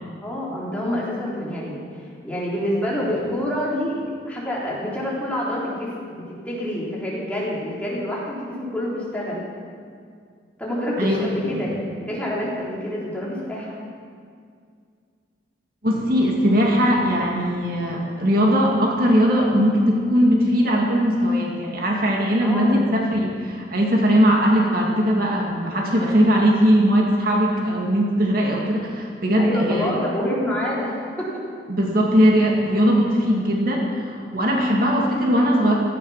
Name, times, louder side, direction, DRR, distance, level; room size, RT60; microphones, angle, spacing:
voice 1, 0.2-1.8 2.2-4.0 4.3-9.4 10.6-13.8 22.4-22.8 29.4-31.4, left 1 dB, 10° left, -6 dB, 3.7 m, -27 dB
voice 2, 15.8-29.9 31.7-35.7, equal, 50° right, -1 dB, 2.3 m, -19 dB
17.0 x 14.5 x 5.8 m, 2.2 s
head